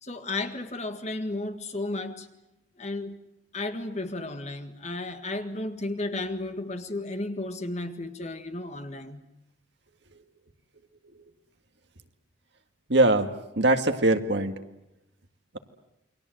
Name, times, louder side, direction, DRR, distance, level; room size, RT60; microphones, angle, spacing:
voice 1, 0.0-2.3 2.8-3.2 3.5-9.2, left 2 dB, 35° left, 1.7 m, -33 dB
voice 2, 12.9-14.5, right 2 dB, 60° right, 2.0 m, -22 dB
29.0 x 23.5 x 7.9 m
head